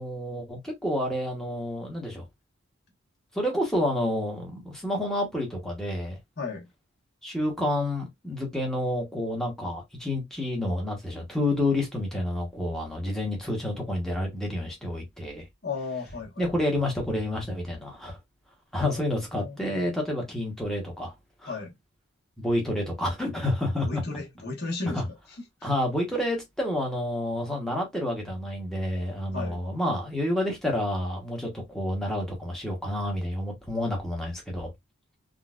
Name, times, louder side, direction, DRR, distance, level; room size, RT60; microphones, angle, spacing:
voice 1, 0.0-2.2 3.3-6.2 7.2-15.4 16.4-18.2 18.7-21.1 21.4-21.5 22.4-24.0 24.9-25.0 25.6-34.7, left 1 dB, ahead, 1.0 m, -29 dB
voice 2, 6.4-6.7 15.6-16.5 18.8-19.0 19.4-19.9 21.5-21.7 23.8-25.0 25.6-25.7 29.3-29.6, left 4 dB, 45° left, 1.1 m, -34 dB
3.8 x 2.3 x 2.3 m
head